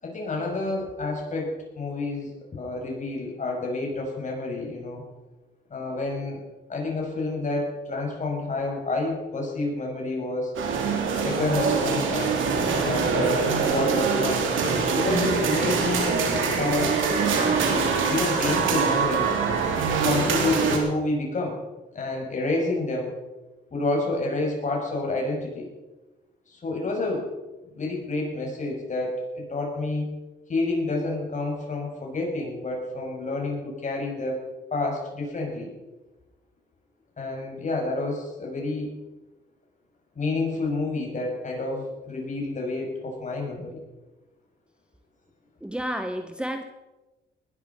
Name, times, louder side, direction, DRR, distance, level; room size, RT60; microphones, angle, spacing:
voice 1, 0.0-5.0 5.7-6.4 6.7-10.6 11.2-12.4 12.8-14.5 14.9-17.0 18.1-19.3 20.0-21.6 21.9-23.1 23.7-25.7 26.5-27.3 27.7-30.1 30.5-34.4 34.7-35.7 37.2-38.9 40.2-43.8, left 2 dB, 40° left, 0 dB, 6.8 m, -29 dB
sound 1, 10.5-20.8, right 5 dB, 80° right, 3.6 m, -24 dB
voice 2, 45.6-46.6, equal, 5° right, 7 dB, 1.2 m, -31 dB
19.5 x 12.0 x 5.6 m, 1.1 s
cardioid pair, 90°, 20 cm